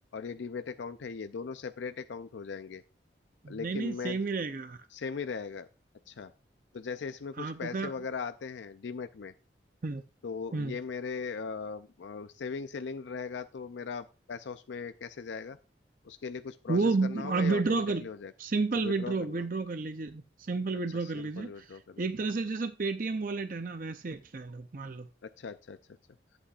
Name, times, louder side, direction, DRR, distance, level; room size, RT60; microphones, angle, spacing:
voice 1, 0.1-2.8 3.5-4.2 4.9-5.7 6.1-6.3 6.7-9.3 10.2-15.6 16.0-18.3 18.7-19.4 21.0-22.1 25.2-25.8, left 5 dB, 85° left, 0.4 m, -39 dB
voice 2, 3.4-4.9 7.4-7.9 9.8-10.0 10.5-10.8 16.7-18.1 18.4-25.1, right 3 dB, 50° right, 0.5 m, -31 dB
11.0 x 8.3 x 2.4 m
head